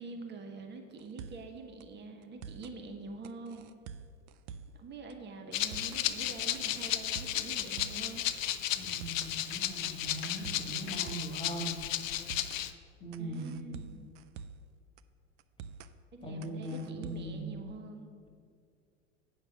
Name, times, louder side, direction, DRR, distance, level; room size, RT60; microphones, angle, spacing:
voice 1, 0.0-3.7 4.7-8.2 13.2-14.0 16.1-18.1, right 3 dB, 30° right, 4 dB, 1.1 m, -45 dB
sound 1, 1.0-1.5 1.8-1.9 2.2-2.8 3.2-4.8 5.1-5.2 5.5-6.1 6.5-8.1 8.4-8.5 8.8-9.3 9.8-11.4 11.7-11.8 12.1-12.6 13.1-14.7 15.0-15.1 15.4-15.9 16.4-17.4, right 6 dB, 65° right, 0.6 m, -47 dB
Rattle (instrument), 5.5-12.7, left 12 dB, 85° left, 0.6 m, -34 dB
voice 2, 8.8-11.8 12.2-12.5 13.0-13.7 16.2-17.6, right 1 dB, 15° left, 1 dB, 1.7 m, -40 dB
sound 2, 9.4-15.4, left 8 dB, 65° left, 1.1 m, -56 dB
8.5 x 5.8 x 5.9 m, 2.1 s
hypercardioid pair, 90°, 38 cm